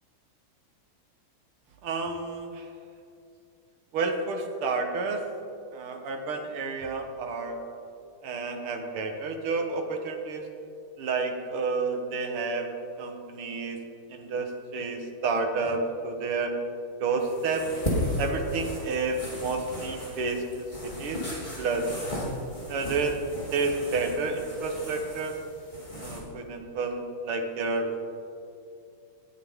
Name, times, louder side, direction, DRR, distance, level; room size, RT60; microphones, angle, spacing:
voice 1, 1.8-2.6 3.9-5.2 5.7-7.6 8.2-10.4 11.0-12.7 13.0-13.8 14.1-16.5 17.0-17.6 18.2-21.2 21.6-21.9 22.7-23.2 23.5-25.3 26.0-28.0, right 4 dB, 80° right, 3 dB, 2.2 m, -30 dB
sound 1, 17.2-26.2, left 1 dB, 20° left, 3.7 m, -35 dB
20.0 x 13.5 x 3.6 m, 2.6 s
omnidirectional pair, 2.3 m